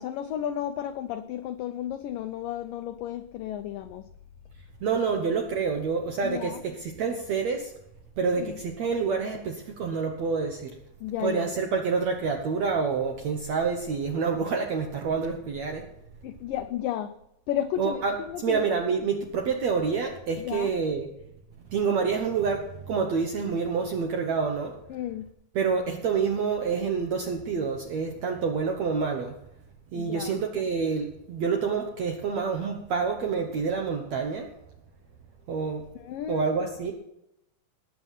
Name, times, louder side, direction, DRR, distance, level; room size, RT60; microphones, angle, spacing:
voice 1, 0.0-4.1 6.2-6.6 8.4-8.6 11.0-11.6 16.2-17.1 17.5-18.6 20.4-20.7 24.9-25.3 30.0-30.4 36.0-36.5, left 11 dB, 85° left, 10 dB, 1.9 m, -33 dB
voice 2, 4.8-7.7 8.2-10.7 11.2-15.8 17.8-21.1 21.7-24.7 25.5-29.3 29.9-34.5 35.5-35.8 36.3-36.9, right 5 dB, 70° right, 3 dB, 1.7 m, -27 dB
19.0 x 7.4 x 5.7 m, 0.81 s
omnidirectional pair, 4.7 m